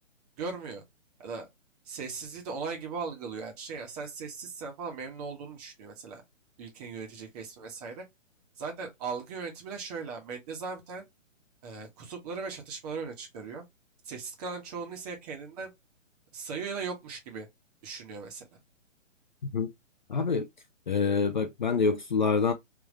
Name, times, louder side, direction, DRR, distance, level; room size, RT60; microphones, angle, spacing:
voice 1, 0.4-0.8 1.2-1.5 1.8-6.2 6.6-8.1 8.6-11.0 11.6-13.6 14.0-15.7 16.3-17.5 17.8-18.6, right 5 dB, 30° right, 1.4 m, -38 dB
voice 2, 20.1-20.5 20.9-22.5, left 5 dB, 40° left, 0.4 m, -26 dB
3.5 x 3.0 x 3.1 m
hypercardioid pair, 145°, 38 cm